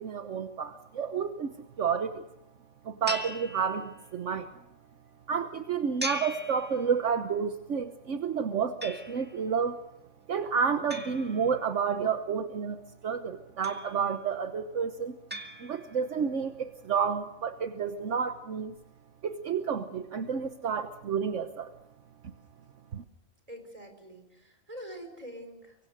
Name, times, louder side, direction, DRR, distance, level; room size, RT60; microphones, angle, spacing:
voice 1, 0.0-2.2 2.8-4.5 5.3-9.8 10.3-12.8 13.0-15.1 15.6-18.7 19.2-21.7 22.9-23.0, right 6 dB, 70° right, 8 dB, 1.4 m, -30 dB
sound 1, 3.1-4.3 6.0-7.3 8.8-9.5 10.9-12.0 13.6-14.3 15.3-16.2, equal, 10° right, 1.7 m, -40 dB
voice 2, 23.5-25.8, equal, 25° right, 5 dB, 4.7 m, -45 dB
24.5 x 24.0 x 6.6 m, 0.90 s
omnidirectional pair, 1.3 m